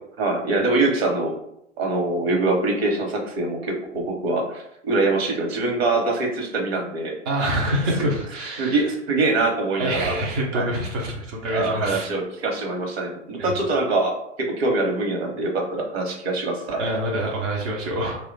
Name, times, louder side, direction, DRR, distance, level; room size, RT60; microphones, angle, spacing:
voice 1, 0.2-1.4 1.8-7.2 8.6-10.1 10.5-10.7 11.5-16.8, right 2 dB, 55° right, 1 dB, 1.0 m, -24 dB
voice 2, 7.3-8.8 9.8-12.1 13.4-13.5 16.8-18.2, right 1 dB, 20° right, -2 dB, 0.3 m, -26 dB
2.9 x 2.1 x 3.9 m, 0.77 s
figure-of-eight pair, 105°, 37 cm